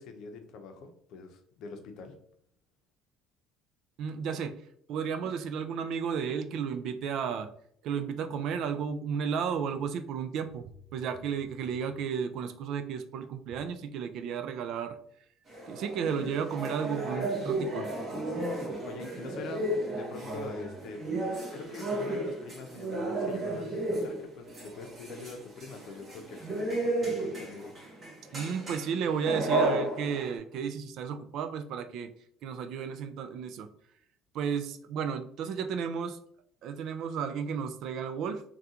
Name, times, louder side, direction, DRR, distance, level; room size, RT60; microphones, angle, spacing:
voice 1, 0.0-2.1 18.8-21.0 21.5-27.7, left 3 dB, 60° left, 6 dB, 0.6 m, -44 dB
voice 2, 4.0-4.6 4.9-7.5 7.8-15.0 15.7-17.9 28.3-32.1 32.4-33.7 34.3-36.2 36.6-38.4, right 7 dB, 55° right, 9 dB, 0.3 m, -33 dB
sound 1, 15.5-30.4, right 2 dB, 25° right, 1.1 m, -33 dB
3.6 x 2.3 x 2.8 m, 0.64 s
cardioid pair, 150°, 0 cm